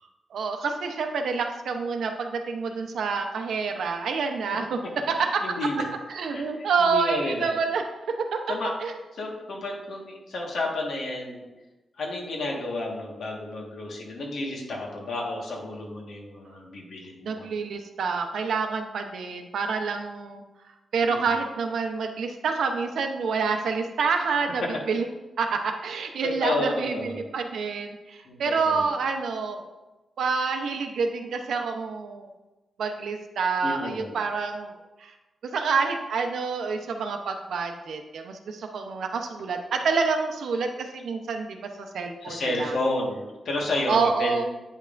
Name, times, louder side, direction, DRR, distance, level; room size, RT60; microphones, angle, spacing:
voice 1, 0.3-4.8 5.1-5.4 6.1-7.8 8.3-8.4 8.8-8.9 17.2-20.4 20.9-25.1 25.4-29.6 30.2-32.3 32.8-34.7 35.0-35.1 35.4-42.8 43.9-44.4, right 5 dB, 80° right, 4 dB, 0.8 m, -27 dB
voice 2, 5.2-5.9 6.3-6.5 6.8-7.5 8.5-8.7 9.2-11.4 12.0-17.5 21.0-21.3 26.2-27.2 28.2-28.4 28.6-28.9 33.6-34.1 42.2-44.4, left 2 dB, 65° left, -1 dB, 1.6 m, -31 dB
9.1 x 5.3 x 2.6 m, 1.1 s
wide cardioid pair, 145°, 0 cm